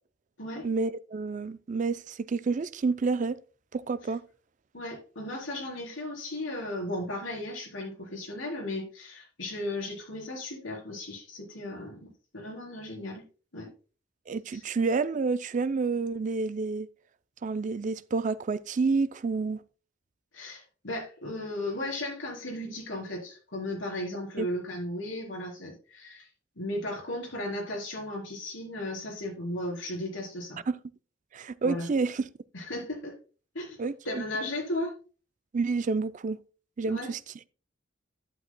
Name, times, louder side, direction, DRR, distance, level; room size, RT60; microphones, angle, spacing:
voice 1, 0.6-3.4 3.7-4.2 14.3-16.9 17.4-19.6 24.4-24.5 30.7-30.8 31.3-32.3 33.8-34.2 35.5-36.4 36.8-37.2, right 4 dB, 40° right, 0.4 m, -29 dB
voice 2, 4.7-13.2 13.5-13.7 14.5-14.6 20.3-26.3 26.6-30.6 31.6-31.9 32.5-33.1 33.5-34.9 36.9-37.1, left 1 dB, 85° left, 4.0 m, -35 dB
11.0 x 8.6 x 2.2 m
head